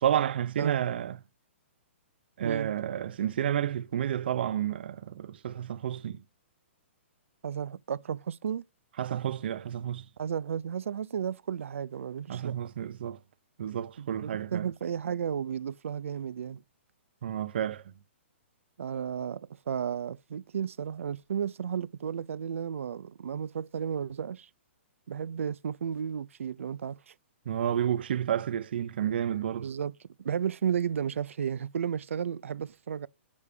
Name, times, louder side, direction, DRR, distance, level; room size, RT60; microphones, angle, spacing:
voice 1, 0.0-1.2 2.4-6.2 9.0-10.1 12.3-13.2 13.6-14.7 17.2-17.8 27.5-29.7, right 10 dB, 50° right, 0.7 m, -30 dB
voice 2, 7.4-8.6 10.2-12.6 14.0-16.6 18.8-24.5 25.1-27.1 29.6-29.9 30.2-33.1, right 8 dB, 90° right, 0.5 m, -33 dB
8.2 x 5.2 x 3.3 m
hypercardioid pair, 175°, 7 cm